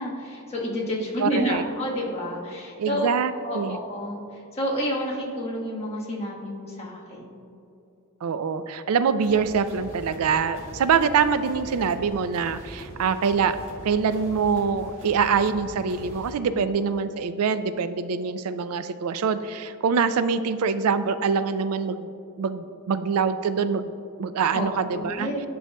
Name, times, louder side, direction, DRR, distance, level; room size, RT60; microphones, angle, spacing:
voice 1, 0.0-3.1 3.4-7.4 16.5-16.7 24.5-25.4, equal, 30° left, -4 dB, 1.3 m, -30 dB
voice 2, 1.2-1.6 2.8-3.8 8.2-13.6 13.8-22.1 22.4-23.9 24.2-25.3, right 6 dB, 90° right, 12 dB, 0.4 m, -24 dB
sound 1, 9.2-16.3, equal, 60° right, 1.5 m, -43 dB
11.0 x 6.2 x 2.2 m, 2.7 s
head